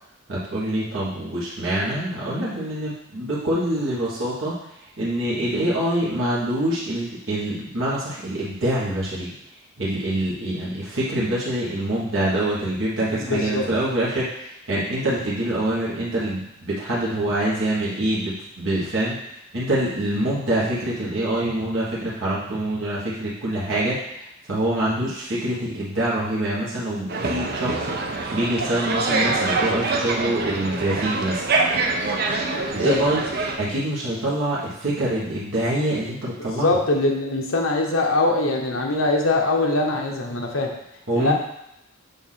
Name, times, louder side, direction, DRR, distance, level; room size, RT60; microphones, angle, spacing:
voice 1, 0.3-4.6 5.0-9.3 9.8-19.1 19.5-27.9 28.3-31.4 32.7-33.2 33.6-36.7 41.1-41.3, right 1 dB, 70° right, -8 dB, 1.4 m, -25 dB
voice 2, 13.2-13.6 32.8-33.0 36.6-40.7 41.1-41.3, left 2 dB, 80° left, 1 dB, 1.0 m, -22 dB
sound 1, 27.1-33.6, right 3 dB, 50° right, 0.7 m, -25 dB
6.9 x 2.7 x 5.8 m, 0.81 s
head